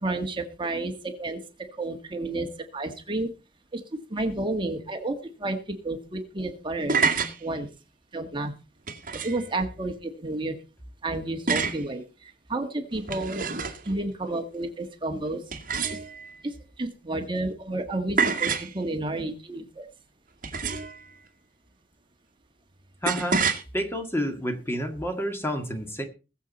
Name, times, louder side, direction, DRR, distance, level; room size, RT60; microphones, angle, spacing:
voice 1, 0.0-1.4 1.8-2.5 2.7-3.3 3.7-3.8 4.1-5.6 5.8-7.0 7.4-7.7 8.1-8.5 9.2-10.6 11.0-13.5 13.8-15.4 16.4-19.9, right 2 dB, 30° right, 5 dB, 1.7 m, -31 dB
sound 1, 6.7-7.4 8.9-9.5 11.5-11.9 12.9-13.9 15.5-16.3 18.2-18.7 20.4-21.0 23.1-23.6, right 5 dB, 50° right, 2.0 m, -27 dB
voice 2, 23.0-23.4 23.7-26.0, equal, 15° left, 5 dB, 2.0 m, -29 dB
21.0 x 7.5 x 4.2 m, 0.32 s
head